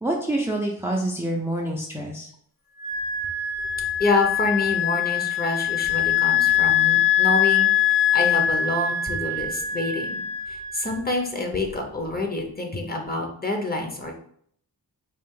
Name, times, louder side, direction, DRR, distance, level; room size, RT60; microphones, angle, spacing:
voice 1, 0.0-2.3, right 1 dB, 5° right, -1 dB, 0.5 m, -27 dB
Wind instrument woodwind instrument, 2.8-11.1, left 9 dB, 60° left, 1.1 m, -23 dB
voice 2, 3.8-7.7 8.1-10.2 10.5-14.1, left 2 dB, 25° left, 2 dB, 0.8 m, -27 dB
4.3 x 2.4 x 3.7 m, 0.64 s
wide cardioid pair, 110°, 38 cm